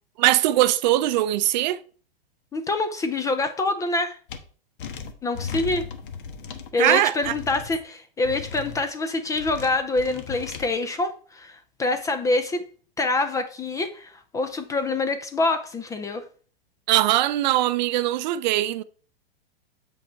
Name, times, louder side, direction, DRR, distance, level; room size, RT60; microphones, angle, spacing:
voice 1, 0.2-1.8 6.8-7.3 16.9-18.8, right 14 dB, 50° right, 0.5 m, -21 dB
voice 2, 2.5-4.2 5.2-5.8 6.7-12.6 13.0-16.3, left 2 dB, 10° left, 0.4 m, -26 dB
sound 1, 4.3-4.4 4.8-6.7 7.2-7.8 8.2-8.8 9.3-10.6, left 5 dB, 55° left, 1.3 m, -36 dB
7.5 x 5.2 x 4.5 m
hypercardioid pair, 130°, 30 cm